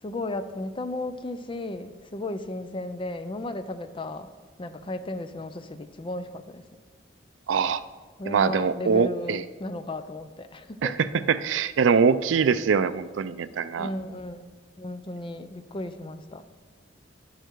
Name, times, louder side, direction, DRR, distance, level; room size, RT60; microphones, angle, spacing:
voice 1, 0.0-4.3 4.6-6.6 8.2-11.0 13.8-16.4, left 2 dB, 30° left, 10 dB, 0.5 m, -35 dB
voice 2, 7.5-7.8 8.3-9.4 10.8-10.9 11.3-13.9, right 6 dB, 85° right, 15 dB, 0.4 m, -23 dB
11.0 x 6.8 x 4.6 m, 1.5 s
head